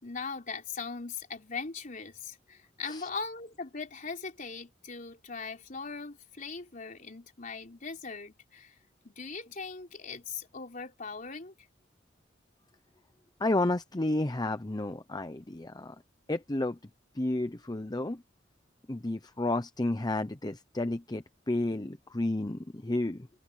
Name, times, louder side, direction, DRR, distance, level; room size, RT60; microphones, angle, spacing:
voice 1, 0.0-8.8 9.0-11.5, left 4 dB, 45° left, 3.9 m, -40 dB
voice 2, 13.4-15.9 16.3-16.8 17.1-18.2 18.9-23.3, left 2 dB, 20° left, 0.8 m, -31 dB
open air
head